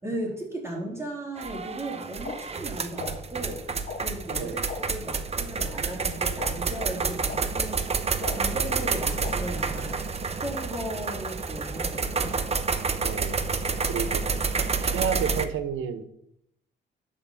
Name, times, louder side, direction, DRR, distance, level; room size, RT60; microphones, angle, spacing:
voice 1, 0.0-7.9 8.2-10.0 10.4-12.4, right 1 dB, 15° right, -3 dB, 3.5 m, -36 dB
sound 1, 1.4-15.5, right 4 dB, 30° right, 0.9 m, -29 dB
sound 2, 2.2-2.3 3.0-3.1 3.9-4.0 4.7-4.8 5.6-5.7 6.4-6.5 7.3-7.4 8.2-8.3 9.2-9.3, left 6 dB, 65° left, 2.7 m, -35 dB
voice 2, 13.0-13.4 13.8-14.2 14.8-16.0, right 8 dB, 85° right, 11 dB, 1.1 m, -30 dB
10.5 x 4.5 x 7.1 m, 0.76 s
cardioid pair, 90°, 20 cm